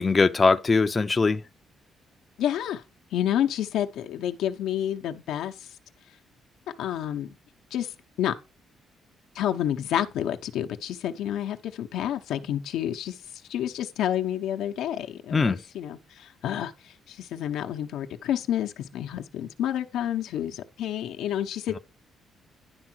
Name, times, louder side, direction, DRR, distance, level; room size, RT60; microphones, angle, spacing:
voice 1, 0.0-1.4 15.3-15.6, left 4 dB, 30° left, 0.6 m, -21 dB
voice 2, 2.4-2.8 3.1-5.5 6.8-7.4 7.7-8.3 9.3-13.2 13.5-21.8, left 11 dB, 85° left, 0.8 m, -29 dB
10.5 x 3.7 x 6.1 m
cardioid pair, 90°, 0 cm